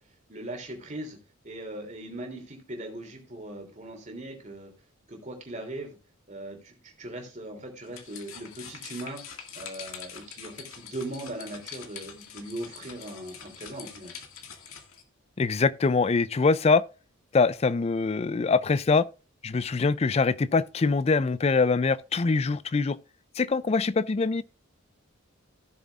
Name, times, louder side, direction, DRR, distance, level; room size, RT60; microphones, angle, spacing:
voice 1, 0.3-1.2 1.4-4.7 5.1-6.0 6.3-9.2 9.5-14.1, right 1 dB, 35° right, 3.0 m, -39 dB
sound 1, 7.8-15.0, left 7 dB, 85° left, 2.0 m, -44 dB
voice 2, 15.4-16.8 17.3-19.0 19.4-23.0 23.4-24.4, left 4 dB, 30° left, 0.4 m, -23 dB
16.5 x 7.0 x 2.4 m
head